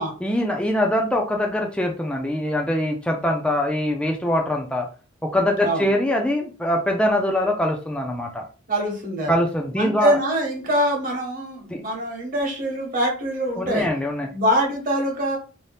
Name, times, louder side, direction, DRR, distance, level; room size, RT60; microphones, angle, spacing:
voice 1, 0.2-4.9 5.2-8.4 9.3-10.1 11.7-11.8 13.6-14.3, left 1 dB, 5° left, 1 dB, 0.3 m, -23 dB
voice 2, 8.7-9.3 9.8-13.9 14.3-15.4, equal, 45° right, 0 dB, 1.0 m, -24 dB
2.7 x 2.1 x 3.2 m, 0.35 s
head